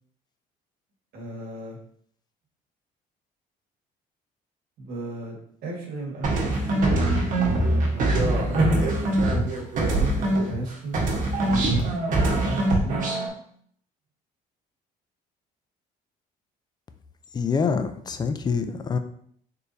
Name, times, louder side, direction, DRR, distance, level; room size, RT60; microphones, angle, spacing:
voice 1, 1.1-1.8 4.8-5.4 5.6-8.7 9.9-11.1 11.4-13.1, right 2 dB, 65° right, -2 dB, 1.5 m, -35 dB
sound 1, 6.2-10.7 10.9-13.3, right 2 dB, 50° right, 1.2 m, -23 dB
voice 2, 17.3-19.0, left 5 dB, 25° left, 9 dB, 0.4 m, -25 dB
4.4 x 3.2 x 2.6 m, 0.64 s
cardioid pair, 110°, 17 cm